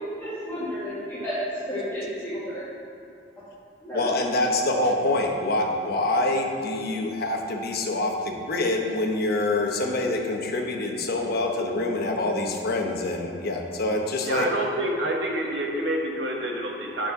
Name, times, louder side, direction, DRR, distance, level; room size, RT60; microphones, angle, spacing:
voice 1, 0.2-1.4 1.7-2.6 3.8-4.0, equal, 15° left, -14 dB, 2.0 m, -32 dB
voice 2, 3.9-14.5, left 2 dB, 60° left, 2 dB, 1.0 m, -26 dB
voice 3, 14.2-17.1, right 1 dB, 80° right, 0 dB, 1.3 m, -28 dB
9.5 x 4.3 x 5.8 m, 2.4 s
head